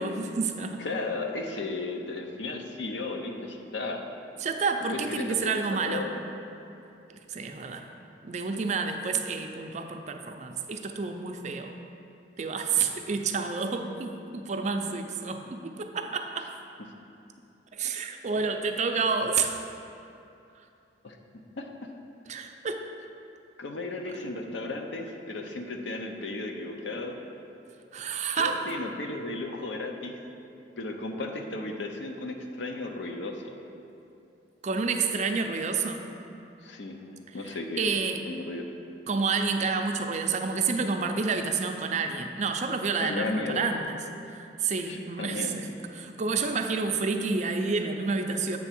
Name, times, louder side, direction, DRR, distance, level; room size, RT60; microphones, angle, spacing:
voice 1, 0.0-0.8 4.4-6.0 7.3-7.8 8.2-11.7 12.4-16.5 17.7-19.6 22.3-22.8 24.0-24.1 27.9-28.7 34.6-36.0 37.4-38.2 39.1-44.0 44.3-48.6, right 4 dB, 40° right, 4 dB, 0.4 m, -29 dB
voice 2, 0.8-4.1 4.9-6.2 18.3-18.4 21.0-21.2 21.6-21.7 23.6-27.2 28.3-30.2 30.8-33.5 36.6-37.8 38.3-38.7 43.0-43.6 44.9-45.5, left 2 dB, 90° left, 4 dB, 0.7 m, -35 dB
7.7 x 3.5 x 5.9 m, 2.7 s
head